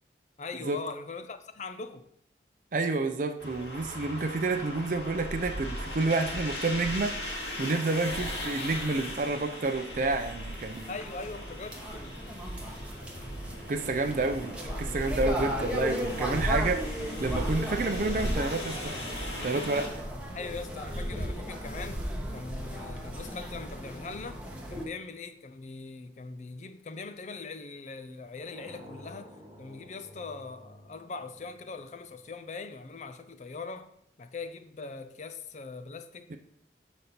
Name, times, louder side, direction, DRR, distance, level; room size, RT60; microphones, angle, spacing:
voice 1, 0.4-2.1 10.9-12.3 20.3-24.4 24.7-36.4, left 4 dB, 40° left, 0.4 m, -41 dB
voice 2, 2.7-7.2 7.6-10.9 13.7-18.9 19.4-19.9 36.3-36.4, right 3 dB, 45° right, 0.5 m, -29 dB
sound 1, 3.4-19.9, left 1 dB, 85° left, 2.2 m, -39 dB
sound 2, 8.3-24.8, equal, 5° right, 0.9 m, -35 dB
sound 3, 28.4-33.1, left 1 dB, 20° right, 1.3 m, -52 dB
6.7 x 4.1 x 5.8 m
head